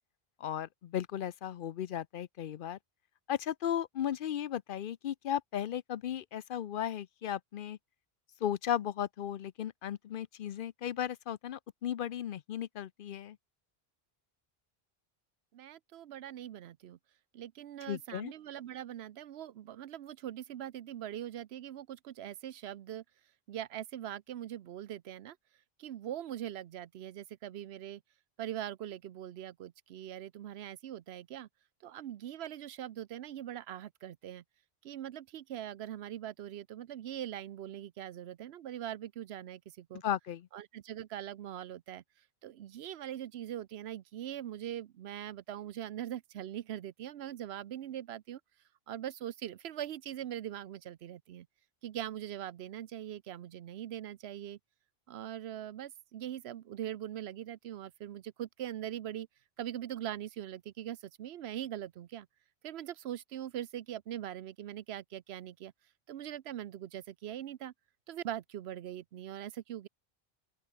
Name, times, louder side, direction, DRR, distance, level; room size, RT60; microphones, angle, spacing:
voice 1, 0.4-2.8 3.3-7.8 8.4-13.4 17.9-18.3 40.0-40.5, left 10 dB, 60° left, 0.7 m, -35 dB
voice 2, 15.5-17.0 17.3-23.0 23.5-25.4 25.8-28.0 28.4-31.5 31.8-34.4 34.8-40.0 40.5-42.0 42.4-48.4 48.9-51.5 51.8-54.6 55.1-59.3 59.6-62.3 62.6-65.7 66.1-67.7 68.1-69.9, right 11 dB, 85° right, 0.9 m, -42 dB
open air
omnidirectional pair, 1.0 m